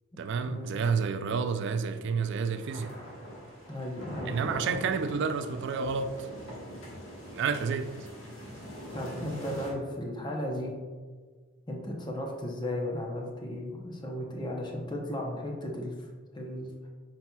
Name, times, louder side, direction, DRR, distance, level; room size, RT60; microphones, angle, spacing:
voice 1, 0.2-2.9 4.3-6.3 7.3-8.1, right 5 dB, 60° right, 0.3 m, -30 dB
sound 1, 0.6-9.7, equal, 85° left, 1.3 m, -43 dB
voice 2, 3.7-4.3 8.9-10.8 11.7-16.1 16.3-16.7, left 1 dB, 20° left, 0.6 m, -35 dB
5.7 x 4.0 x 2.2 m
head